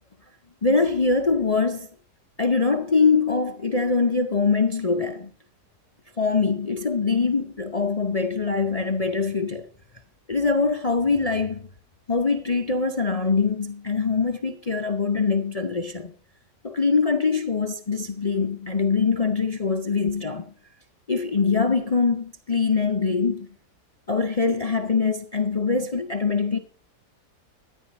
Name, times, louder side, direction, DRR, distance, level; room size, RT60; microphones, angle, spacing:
voice 1, 0.6-1.9 2.4-5.3 6.2-9.6 10.3-11.6 12.1-16.1 16.6-20.4 21.1-23.5 24.1-26.6, left 4 dB, 40° left, 0.5 m, -23 dB
14.0 x 10.5 x 4.3 m
omnidirectional pair, 1.8 m